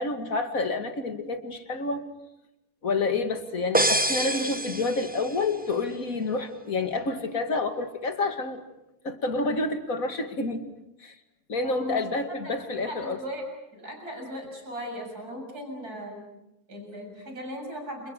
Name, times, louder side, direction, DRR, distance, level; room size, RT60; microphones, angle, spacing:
voice 1, 0.0-2.1 2.8-8.6 9.0-10.7 11.0-11.2 11.5-13.2, left 3 dB, 55° left, 7 dB, 2.7 m, -29 dB
sound 1, 3.7-5.5, right 1 dB, 10° right, 0.7 m, -26 dB
voice 2, 11.6-12.0 12.4-12.6 12.9-13.4 13.7-16.3 16.7-18.1, equal, 65° right, 2 dB, 7.6 m, -38 dB
29.5 x 28.5 x 6.6 m, 0.87 s
omnidirectional pair, 1.7 m